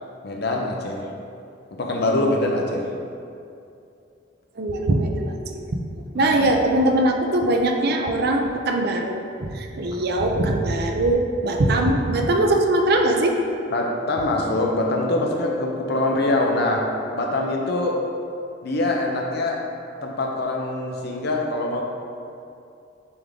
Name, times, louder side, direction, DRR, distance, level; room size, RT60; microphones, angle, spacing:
voice 1, 0.2-1.1 1.7-2.9 6.1-6.4 13.7-18.0 18.6-19.6 20.0-21.8, left 2 dB, 60° left, 0 dB, 0.8 m, -24 dB
voice 2, 4.6-13.4, right 1 dB, 55° right, 3 dB, 0.5 m, -21 dB
6.9 x 3.7 x 3.6 m, 2.6 s
head